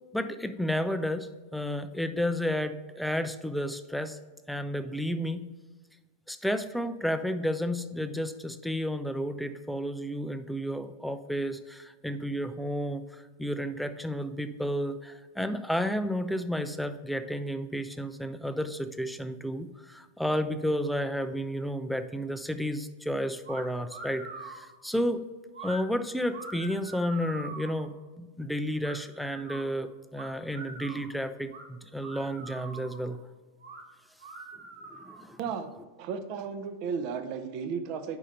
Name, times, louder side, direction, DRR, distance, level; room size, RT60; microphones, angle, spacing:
voice 1, 0.1-4.2 4.5-5.5 6.3-25.3 25.6-33.2 34.9-35.4, equal, ahead, 10 dB, 0.4 m, -32 dB
sound 1, 23.4-23.6 23.9-24.7 25.5-25.8 26.3-27.8 28.8-29.6 30.1-31.1 31.5-31.6 32.0-33.0 33.6-33.8 34.2-35.3, right 3 dB, 65° right, 1.4 m, -43 dB
voice 2, 36.0-38.2, right 6 dB, 45° right, 8 dB, 0.7 m, -34 dB
5.4 x 4.9 x 5.4 m, 1.3 s
figure-of-eight pair, 90°, 0 cm